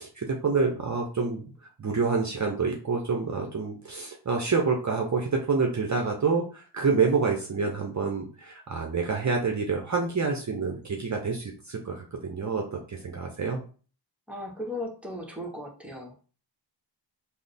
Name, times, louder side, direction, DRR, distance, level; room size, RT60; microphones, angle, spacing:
voice 1, 0.0-1.4 1.8-13.6, right 4 dB, 40° right, 1 dB, 0.6 m, -27 dB
voice 2, 14.3-16.2, left 1 dB, 5° right, 0 dB, 0.9 m, -36 dB
3.2 x 2.0 x 3.9 m, 0.38 s
wide cardioid pair, 80°, 45 cm